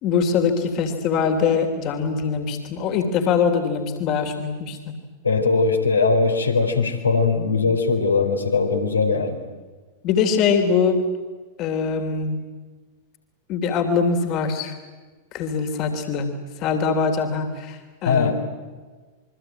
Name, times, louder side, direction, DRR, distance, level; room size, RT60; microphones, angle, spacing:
voice 1, 0.0-4.9 10.0-11.0 11.6-12.4 13.5-14.7 15.3-16.3 16.6-18.3, left 6 dB, 40° left, 6 dB, 3.3 m, -22 dB
voice 2, 5.2-9.4 18.0-18.3, left 4 dB, 80° left, 3 dB, 4.2 m, -20 dB
27.5 x 24.0 x 9.0 m, 1.4 s
figure-of-eight pair, 90°, 0 cm